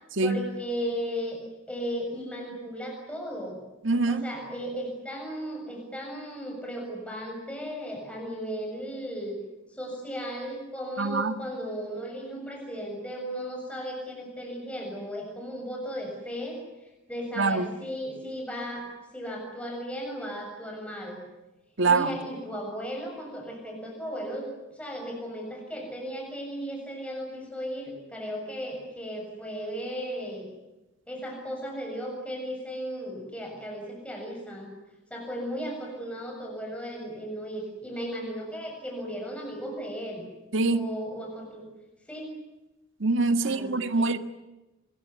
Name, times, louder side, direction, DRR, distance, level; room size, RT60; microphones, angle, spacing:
voice 1, 0.2-1.4 1.7-3.6 4.1-9.4 9.7-16.6 17.1-21.2 21.8-24.5 24.7-30.5 31.1-34.7 35.1-40.2 40.7-41.7 42.1-42.3 43.4-44.1, equal, 5° left, 7.2 m, -36 dB
voice 2, 3.8-4.2 11.0-11.3 17.4-17.7 21.8-22.1 40.5-40.8 43.0-44.2, right 3 dB, 70° right, 1.7 m, -24 dB
25.0 x 22.5 x 9.8 m
head